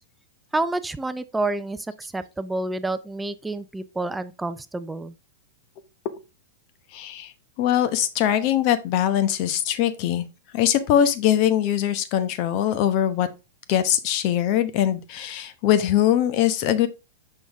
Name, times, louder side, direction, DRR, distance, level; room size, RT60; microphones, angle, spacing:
voice 1, 0.5-5.1, right 2 dB, 10° right, 0.5 m, -29 dB
voice 2, 6.9-7.3 7.6-10.2 10.5-13.3 13.7-16.9, left 10 dB, 45° left, 0.9 m, -22 dB
6.2 x 5.4 x 3.5 m
hypercardioid pair, 105°, 0 cm